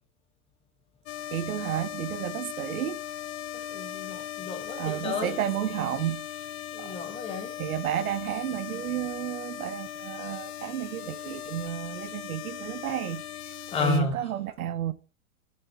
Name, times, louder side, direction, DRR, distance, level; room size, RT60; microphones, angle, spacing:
sound 1, 1.1-14.0, left 11 dB, 50° left, 1.2 m, -38 dB
voice 1, 1.3-3.0 4.8-6.3 6.8-6.9 7.6-13.2 13.8-14.9, right 12 dB, 85° right, 1.0 m, -31 dB
voice 2, 3.7-5.4 6.7-7.5 13.7-14.2, left 6 dB, 15° left, 1.6 m, -32 dB
9.0 x 7.8 x 4.5 m
supercardioid pair, 160°, 42 cm